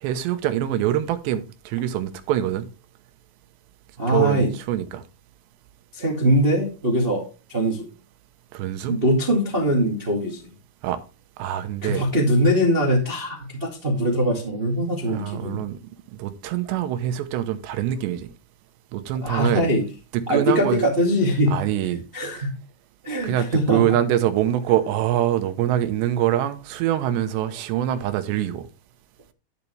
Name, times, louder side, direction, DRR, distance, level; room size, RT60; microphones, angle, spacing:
voice 1, 0.0-2.7 4.1-5.0 8.5-9.0 10.8-11.0 11.4-12.1 15.1-15.8 16.2-18.3 18.9-19.7 20.1-20.8 21.5-22.0 23.2-28.7, right 12 dB, 85° right, 3.1 m, -24 dB
voice 2, 4.0-4.5 5.9-7.2 7.5-7.9 8.9-10.4 11.8-15.6 19.2-19.8 20.3-21.5 22.1-22.5 23.0-23.8, equal, 25° right, 1.3 m, -22 dB
12.0 x 7.0 x 3.3 m
omnidirectional pair, 4.9 m